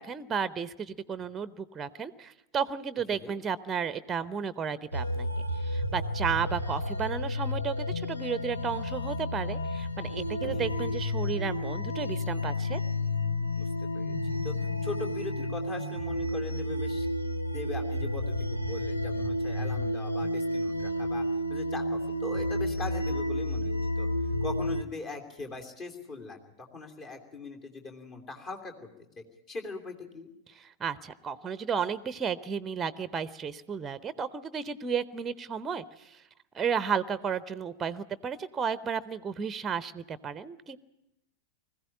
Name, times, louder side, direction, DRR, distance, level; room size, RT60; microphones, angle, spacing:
voice 1, 0.0-5.3 5.6-12.8 30.5-36.2 36.5-40.8, right 6 dB, 20° right, 17 dB, 0.8 m, -33 dB
sound 1, 4.9-24.8, left 1 dB, 85° left, 1.1 m, -31 dB
voice 2, 13.5-14.5 14.8-17.1 17.5-28.9 29.2-30.3, left 3 dB, 35° left, 4 dB, 2.9 m, -41 dB
20.5 x 15.5 x 10.0 m, 0.88 s
figure-of-eight pair, 90°, 0 cm